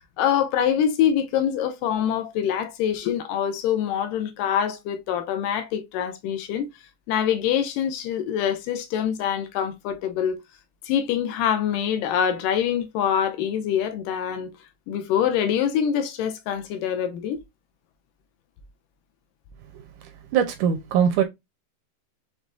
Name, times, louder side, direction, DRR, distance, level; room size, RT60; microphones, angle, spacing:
voice 1, 0.2-6.7 7.1-10.4 10.9-14.5 14.9-17.4, left 9 dB, 80° left, 2.2 m, -25 dB
voice 2, 20.3-21.2, right 8 dB, 80° right, 1.9 m, -21 dB
6.1 x 3.3 x 2.5 m
omnidirectional pair, 4.0 m